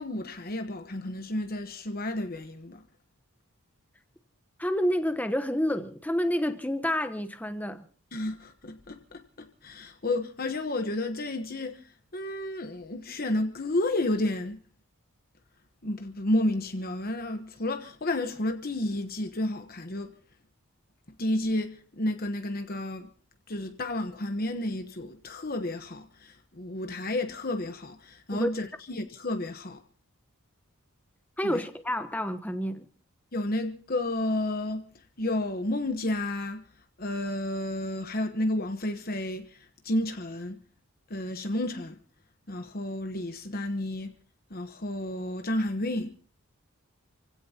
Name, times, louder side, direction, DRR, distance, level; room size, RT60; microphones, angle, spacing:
voice 1, 0.0-2.8 8.1-14.6 15.8-20.1 21.2-23.1 23.5-29.8 31.4-31.6 33.3-34.9 35.2-36.6 37.0-40.6 41.1-42.0 42.5-44.1 44.5-46.1, left 1 dB, 40° left, 1.1 m, -31 dB
voice 2, 4.6-7.8 28.3-28.5 31.4-32.8, equal, 5° left, 1.0 m, -29 dB
29.0 x 16.5 x 2.9 m
head